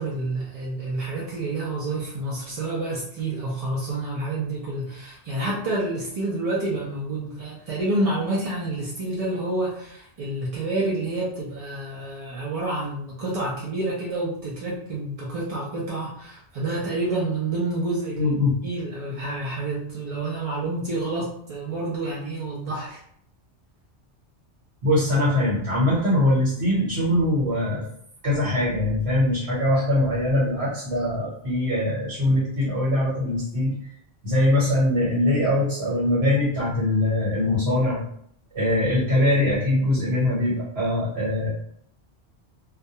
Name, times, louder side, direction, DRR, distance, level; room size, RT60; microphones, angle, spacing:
voice 1, 0.0-18.3 18.6-23.0, right 2 dB, 55° right, -5 dB, 0.4 m, -28 dB
voice 2, 18.2-18.5 24.8-27.8 28.2-33.7 34.2-38.0 38.5-41.5, left 1 dB, 70° right, -8 dB, 1.2 m, -22 dB
2.3 x 2.1 x 2.7 m, 0.67 s
omnidirectional pair, 1.2 m